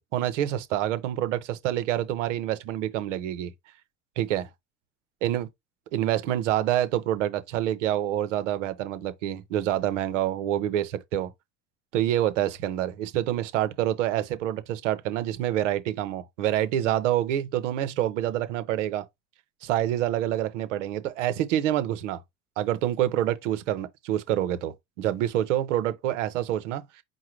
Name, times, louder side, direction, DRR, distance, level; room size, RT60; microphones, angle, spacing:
voice 1, 0.1-3.5 4.2-4.5 5.2-5.5 5.9-11.3 11.9-19.1 19.6-22.2 22.6-26.8, right 12 dB, 85° right, 0.8 m, -27 dB
4.8 x 2.2 x 4.4 m
hypercardioid pair, 75°, 36 cm